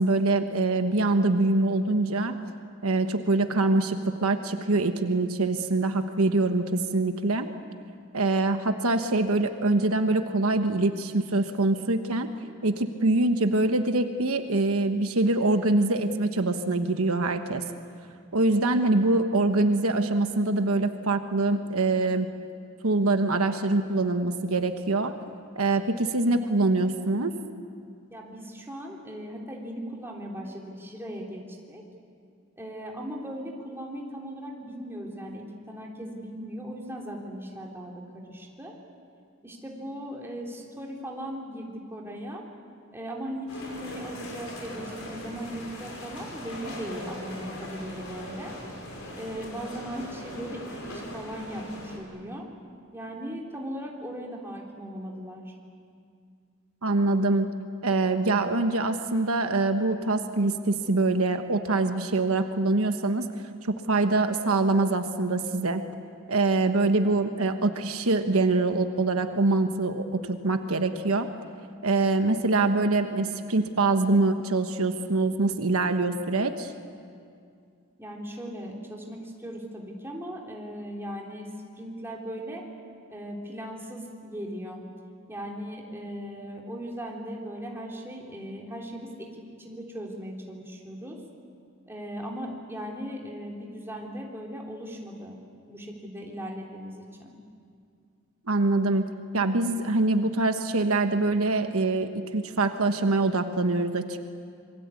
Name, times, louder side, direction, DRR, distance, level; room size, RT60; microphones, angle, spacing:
voice 1, 0.0-2.4 2.8-7.5 8.1-12.3 12.6-17.6 18.3-22.3 22.8-25.1 25.5-27.3 56.8-57.5 57.8-63.3 63.6-65.8 66.3-71.3 71.8-76.7 98.5-99.0 99.3-104.3, right 2 dB, 80° right, 7 dB, 1.3 m, -24 dB
voice 2, 28.1-31.8 32.6-38.7 39.4-42.4 42.9-48.5 49.1-52.4 52.9-55.5 78.0-81.5 81.8-82.7 83.1-84.8 85.3-91.2 91.9-95.4 95.7-97.4, equal, 10° right, -1 dB, 3.4 m, -38 dB
sound 1, 43.5-52.0, left 1 dB, 70° left, 5.8 m, -40 dB
27.0 x 23.0 x 8.4 m, 2.3 s
head